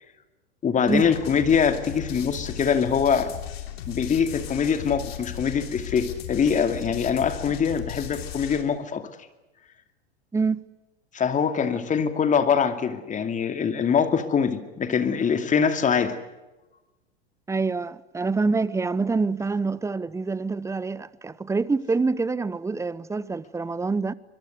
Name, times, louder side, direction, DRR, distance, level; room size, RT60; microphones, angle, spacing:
voice 1, 0.6-3.3 3.9-9.1 11.1-16.2, left 6 dB, 25° left, 2.5 m, -23 dB
sound 1, 0.9-8.6, left 11 dB, 65° left, 3.4 m, -36 dB
voice 2, 10.3-10.6 17.5-24.1, right 4 dB, 10° right, 0.8 m, -26 dB
24.5 x 22.5 x 8.1 m
hypercardioid pair, 95°, 32 cm